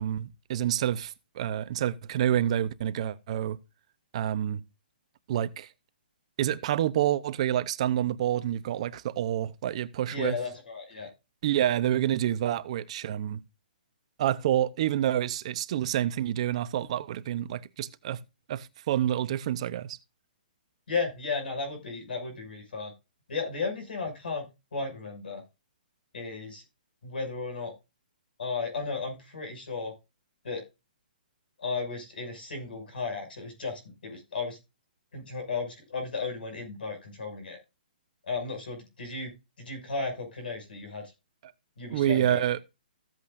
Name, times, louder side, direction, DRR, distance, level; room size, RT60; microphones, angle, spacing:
voice 1, 0.0-3.6 4.1-4.6 5.3-5.7 6.4-10.4 11.4-13.4 14.2-18.2 18.5-20.0 41.9-42.6, right 11 dB, 40° right, 0.6 m, -28 dB
voice 2, 10.1-11.1 20.9-22.9 23.3-25.4 26.1-26.6 27.0-27.7 28.4-29.9 30.4-30.6 31.6-34.6 35.1-37.6 38.2-39.3 39.6-41.1 41.8-42.4, left 4 dB, 75° left, 6.1 m, -34 dB
15.0 x 8.5 x 2.5 m
hypercardioid pair, 160°, 5 cm